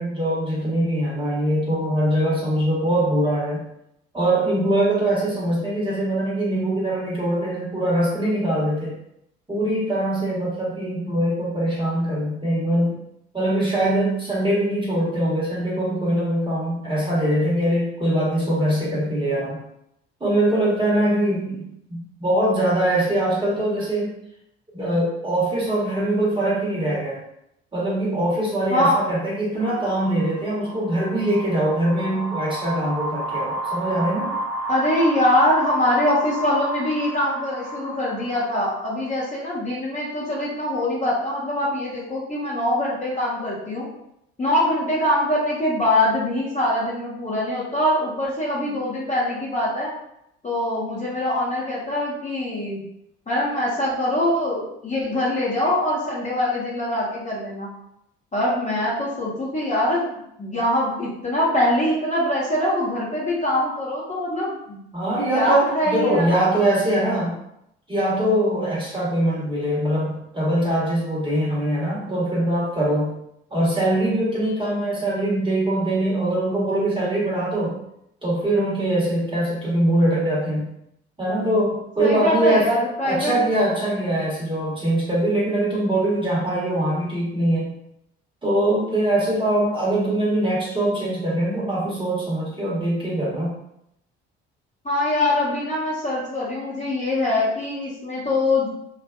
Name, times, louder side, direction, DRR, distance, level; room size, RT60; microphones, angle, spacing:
voice 1, 0.0-3.6 4.1-9.0 9.5-13.0 13.3-19.6 20.2-24.1 24.7-27.2 27.7-34.3 64.9-67.4 67.9-73.2 73.5-77.8 78.2-80.7 81.2-87.7 88.4-93.6, right 1 dB, 15° right, -6 dB, 1.1 m, -22 dB
voice 2, 28.7-29.0 34.7-43.9 44.4-49.9 50.4-52.8 53.3-57.7 58.3-64.8 65.3-66.4 82.0-83.4 94.8-98.7, left 1 dB, 20° left, -7 dB, 1.0 m, -23 dB
sound 1, 29.6-39.1, right 1 dB, 85° left, 0.9 m, -32 dB
2.5 x 2.5 x 2.3 m, 0.78 s
hypercardioid pair, 55°, 32 cm